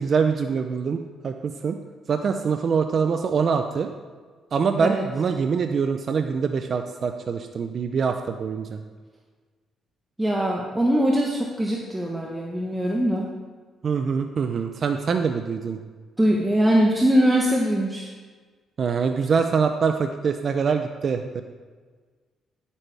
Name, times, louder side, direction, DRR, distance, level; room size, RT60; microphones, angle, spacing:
voice 1, 0.0-1.8 2.1-3.9 4.5-8.8 13.8-15.8 18.8-21.4, right 5 dB, 50° right, 6 dB, 0.5 m, -24 dB
voice 2, 10.2-13.3 16.2-18.1, equal, 10° right, -2 dB, 1.1 m, -22 dB
10.5 x 8.4 x 3.4 m, 1.5 s
cardioid pair, 90°, 0 cm